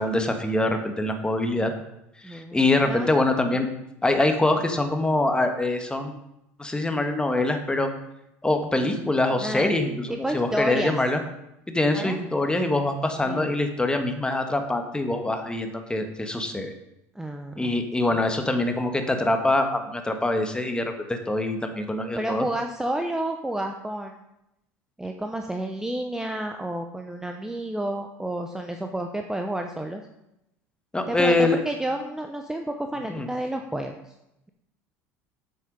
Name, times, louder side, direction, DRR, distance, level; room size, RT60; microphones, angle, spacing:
voice 1, 0.0-1.7 2.2-3.7 4.0-6.2 6.6-7.9 8.4-11.2 11.7-16.7 17.6-22.4 30.9-31.6 33.1-33.3, left 2 dB, 10° left, 5 dB, 1.6 m, -24 dB
voice 2, 2.2-3.1 9.4-11.0 11.9-12.2 13.3-13.5 17.1-17.8 18.1-18.2 22.1-24.2 25.0-30.0 31.1-34.1, right 1 dB, 5° right, 4 dB, 0.9 m, -30 dB
7.9 x 7.7 x 5.3 m, 0.86 s
hypercardioid pair, 75°, 8 cm